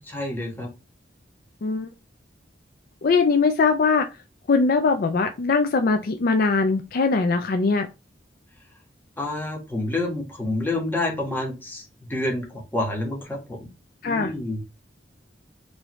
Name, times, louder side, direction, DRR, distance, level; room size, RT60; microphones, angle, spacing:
voice 1, 0.1-0.7 9.2-11.8 12.1-13.7 14.0-14.6, left 2 dB, 10° left, -1 dB, 1.3 m, -28 dB
voice 2, 3.0-4.0 4.5-7.9 14.0-14.3, left 4 dB, 55° left, 6 dB, 0.4 m, -21 dB
4.7 x 2.7 x 3.0 m, 0.26 s
head